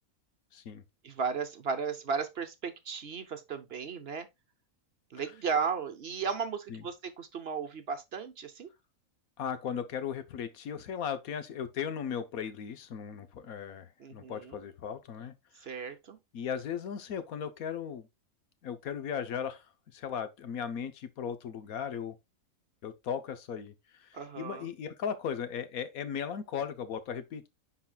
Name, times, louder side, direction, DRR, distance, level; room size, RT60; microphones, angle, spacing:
voice 1, 0.5-0.8 6.7-6.8 9.4-15.7 16.3-18.1 18.6-19.7 19.9-22.2 22.8-24.1 24.4-27.5, left 7 dB, 85° left, 1.4 m, -37 dB
voice 2, 1.0-4.3 5.1-8.7 14.0-14.6 15.6-16.2 24.1-24.7, right 6 dB, 50° right, 0.9 m, -35 dB
9.9 x 4.1 x 2.3 m
omnidirectional pair, 1.5 m